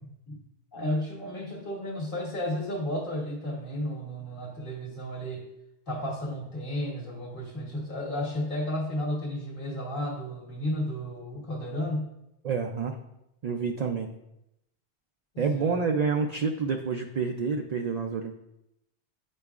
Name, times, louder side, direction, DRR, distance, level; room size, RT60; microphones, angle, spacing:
voice 1, 0.0-0.4 0.7-5.4 5.9-12.1 15.3-15.8, left 1 dB, 50° left, -2 dB, 1.5 m, -33 dB
voice 2, 12.4-13.0 13.4-14.1 15.4-18.3, right 5 dB, 60° right, 4 dB, 0.4 m, -28 dB
9.0 x 5.2 x 2.4 m, 0.85 s
omnidirectional pair, 1.1 m